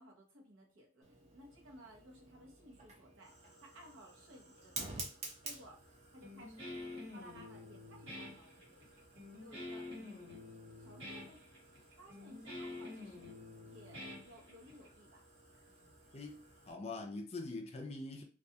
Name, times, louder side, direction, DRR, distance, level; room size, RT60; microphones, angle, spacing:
voice 1, 0.0-3.3 3.6-5.2 5.4-5.8 6.1-6.8 7.1-8.9 9.4-10.3 10.8-11.4 12.0-13.3 13.6-15.2 15.5-16.0, equal, 90° right, 0.7 m, -58 dB
Fire, 1.0-16.7, right 2 dB, 35° right, 0.5 m, -53 dB
Guitar, 6.2-14.9, left 2 dB, 70° right, 1.3 m, -48 dB
voice 2, 16.7-18.2, left 3 dB, 30° left, 0.4 m, -43 dB
2.3 x 2.3 x 2.7 m
head